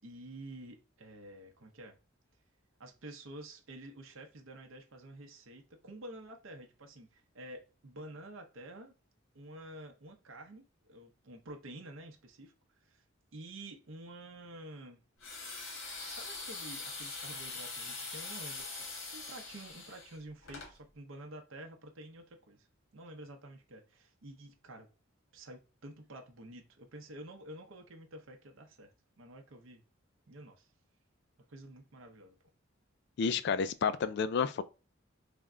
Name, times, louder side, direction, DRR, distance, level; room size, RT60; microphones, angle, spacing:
voice 1, 0.0-2.0 2.8-8.9 9.3-12.5 12.8-13.0 13.3-15.0 16.1-18.9 19.1-22.7 22.9-24.9 25.3-29.8 30.3-30.7 31.5-32.4, right 1 dB, 75° right, 0.7 m, -49 dB
sound 1, 15.2-20.7, left 3 dB, 80° left, 1.3 m, -43 dB
voice 2, 33.2-34.6, left 6 dB, 55° left, 0.3 m, -30 dB
3.4 x 2.1 x 3.6 m
head